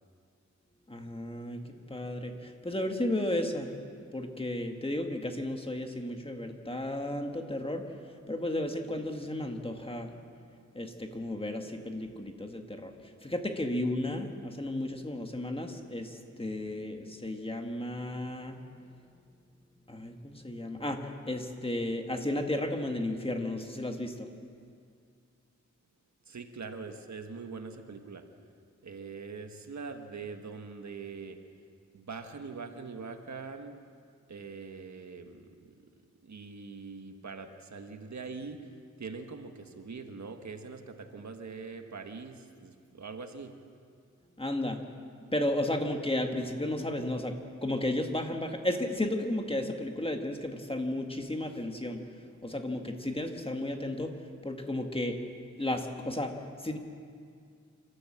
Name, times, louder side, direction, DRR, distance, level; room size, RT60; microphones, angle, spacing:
voice 1, 0.9-3.8 4.1-10.2 10.7-18.6 19.9-24.3 44.4-44.8 45.3-52.0 52.4-54.2 54.4-55.2 55.6-56.8, left 1 dB, 20° left, 4 dB, 1.7 m, -33 dB
voice 2, 26.3-28.3 28.8-31.4 31.9-33.8 34.3-35.7 36.2-38.7 39.0-43.6, right 4 dB, 70° right, 6 dB, 1.5 m, -43 dB
28.0 x 13.0 x 7.6 m, 2.3 s
wide cardioid pair, 105°, 29 cm